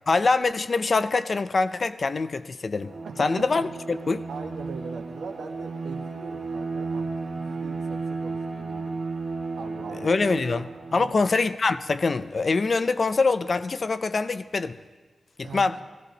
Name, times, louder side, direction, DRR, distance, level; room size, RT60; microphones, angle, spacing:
voice 1, 0.1-2.9 3.2-4.2 10.0-14.8 15.4-15.7, left 4 dB, 45° left, 0.5 m, -24 dB
Bowed string instrument, 2.8-11.3, right 4 dB, 65° right, 1.9 m, -34 dB
voice 2, 3.0-3.6 4.3-9.0 9.6-10.2 10.9-11.1 15.4-15.8, right 4 dB, 90° right, 1.3 m, -41 dB
17.0 x 15.0 x 3.9 m
wide cardioid pair, 95°, 0 cm